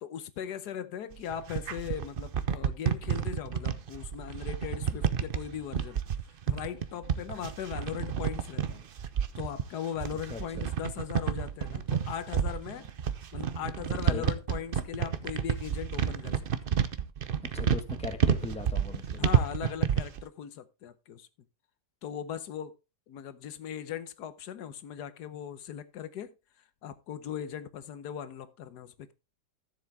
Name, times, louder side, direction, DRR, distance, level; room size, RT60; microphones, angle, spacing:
voice 1, 0.0-6.0 6.5-8.8 9.4-12.9 13.3-16.5 19.2-21.3 22.0-22.7 23.1-26.3 26.8-29.1, left 9 dB, 70° left, 1.4 m, -39 dB
sound 1, 1.1-20.2, right 8 dB, 55° right, 0.6 m, -30 dB
voice 2, 10.3-10.7 14.0-14.2 17.5-19.3, left 3 dB, 5° left, 1.1 m, -39 dB
13.0 x 7.4 x 3.4 m
omnidirectional pair, 1.8 m